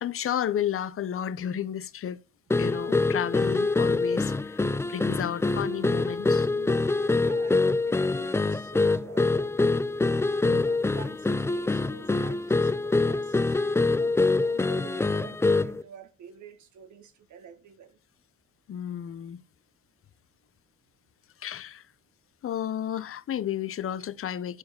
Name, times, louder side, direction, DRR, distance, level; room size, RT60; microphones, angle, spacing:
voice 1, 0.0-2.2 2.5-6.5 10.4-10.6 18.7-19.4 21.4-21.8 22.4-24.6, left 9 dB, 45° left, 0.7 m, -32 dB
sound 1, 2.5-15.8, left 3 dB, 10° left, 0.4 m, -25 dB
voice 2, 6.5-9.7 10.4-18.0, right 6 dB, 70° right, 1.5 m, -47 dB
9.7 x 4.8 x 6.6 m
cardioid pair, 90°, 30 cm